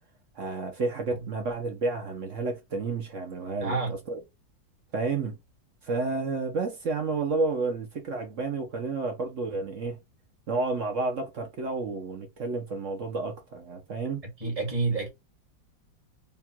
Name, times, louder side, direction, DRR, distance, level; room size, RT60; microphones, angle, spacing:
voice 1, 0.3-4.2 4.9-5.4 5.8-10.0 10.5-14.2, right 3 dB, 55° right, 0.9 m, -31 dB
voice 2, 3.6-4.0 14.4-15.1, right 3 dB, 20° right, 1.5 m, -28 dB
3.6 x 2.4 x 4.3 m
omnidirectional pair, 2.1 m